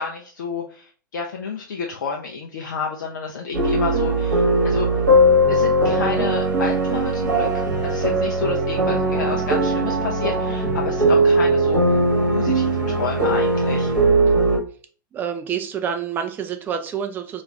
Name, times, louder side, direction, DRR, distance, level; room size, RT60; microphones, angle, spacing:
voice 1, 0.0-4.9 5.5-12.0 12.3-13.9, left 5 dB, 65° left, 0 dB, 0.4 m, -30 dB
sound 1, 3.5-14.6, right 1 dB, 65° right, 0.9 m, -19 dB
voice 2, 15.1-17.4, right 8 dB, 20° right, 7 dB, 0.3 m, -28 dB
2.4 x 2.3 x 3.1 m, 0.41 s
figure-of-eight pair, 95°, 11 cm